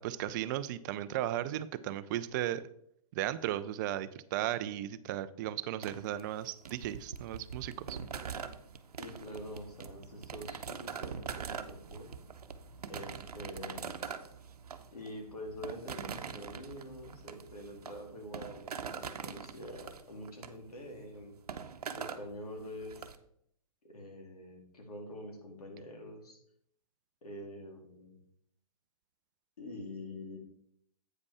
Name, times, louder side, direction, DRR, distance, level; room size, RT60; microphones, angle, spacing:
voice 1, 0.0-2.7 3.1-8.0, right 12 dB, 30° right, 14 dB, 0.4 m, -35 dB
sound 1, 5.8-23.1, right 6 dB, 85° right, 0.8 m, -43 dB
voice 2, 9.0-12.1 12.9-14.0 14.9-21.4 21.9-23.1 23.8-26.4 27.2-28.2 29.6-30.4, left 1 dB, 85° left, 2 dB, 2.7 m, -46 dB
8.6 x 5.1 x 4.8 m, 0.70 s
hypercardioid pair, 140°, 19 cm